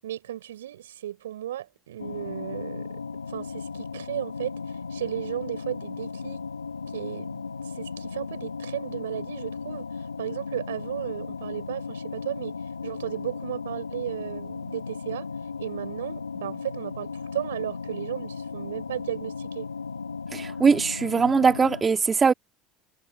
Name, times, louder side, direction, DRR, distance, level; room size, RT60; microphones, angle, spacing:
voice 1, 0.0-3.0 3.3-6.4 6.9-12.6 12.8-15.3 15.6-19.7, right 12 dB, 75° right, 6.6 m, -35 dB
sound 1, 2.0-21.8, left 5 dB, 90° left, 1.9 m, -36 dB
voice 2, 20.3-22.3, right 5 dB, 25° right, 2.4 m, -21 dB
figure-of-eight pair, 65°, 0 cm